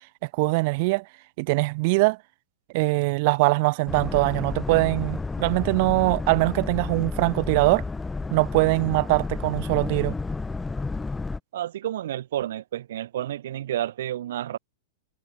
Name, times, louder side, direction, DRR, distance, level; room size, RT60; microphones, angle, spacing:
voice 1, 0.2-1.0 1.4-2.2 2.7-7.8 8.3-10.1, right 26 dB, 35° right, 7.4 m, -22 dB
Boat Water vehicle, 3.9-11.4, left 3 dB, 5° left, 2.4 m, -31 dB
voice 2, 11.5-14.6, right 12 dB, 60° right, 6.5 m, -30 dB
supercardioid pair, 175°, 0 cm